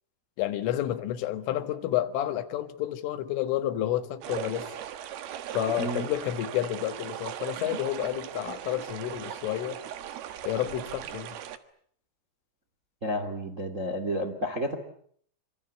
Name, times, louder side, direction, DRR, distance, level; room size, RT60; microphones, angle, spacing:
voice 1, 0.4-4.7 5.5-9.8 10.4-11.4, left 12 dB, 80° left, 4.0 m, -30 dB
sound 1, 4.2-11.6, right 10 dB, 65° right, 3.0 m, -38 dB
voice 2, 5.8-6.1 13.0-14.8, equal, 30° right, 1.5 m, -31 dB
27.5 x 26.0 x 8.3 m
omnidirectional pair, 5.7 m